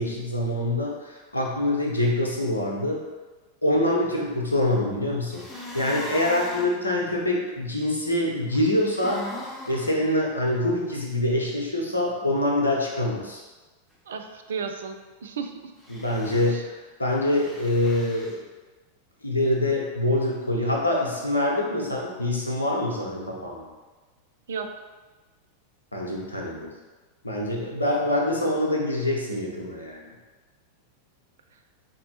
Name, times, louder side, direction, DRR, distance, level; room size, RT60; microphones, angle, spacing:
voice 1, 0.0-3.0 3.6-9.3 9.7-13.4 15.9-18.5 19.2-23.6 25.9-26.7 27.2-30.1, left 1 dB, 80° left, -2 dB, 0.7 m, -25 dB
sound 1, 5.3-6.7 8.5-9.9 15.8-16.6 17.3-18.3, left 1 dB, 5° left, 0.8 m, -39 dB
voice 2, 14.1-15.7 16.5-16.6 24.5-24.7, right 6 dB, 65° right, 6 dB, 0.3 m, -34 dB
4.2 x 3.1 x 2.8 m, 1.2 s
figure-of-eight pair, 90°, 0 cm